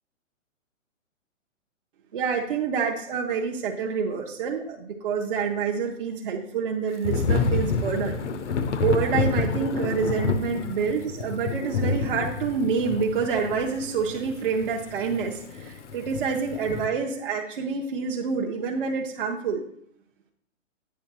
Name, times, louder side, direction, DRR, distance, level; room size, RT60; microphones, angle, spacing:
voice 1, 2.1-8.2 8.8-19.6, right 5 dB, 45° right, 0 dB, 0.7 m, -27 dB
Thunder / Rain, 7.0-16.9, left 4 dB, 65° left, 0.7 m, -28 dB
8.4 x 3.3 x 6.0 m, 0.69 s
hypercardioid pair, 165°, 39 cm